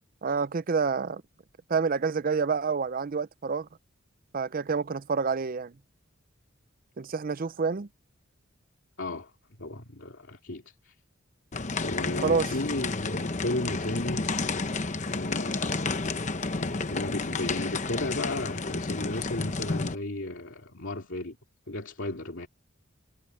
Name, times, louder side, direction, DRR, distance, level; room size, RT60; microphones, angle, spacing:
voice 1, 0.2-1.2 1.7-3.7 4.3-5.7 7.0-7.9 12.2-12.5, right 5 dB, 45° right, 0.5 m, -28 dB
voice 2, 9.0-9.3 9.6-10.9 11.8-14.3 15.0-16.1 16.5-21.4 21.7-22.5, left 2 dB, 65° left, 2.7 m, -34 dB
sound 1, 11.5-19.9, left 3 dB, 35° left, 0.9 m, -31 dB
head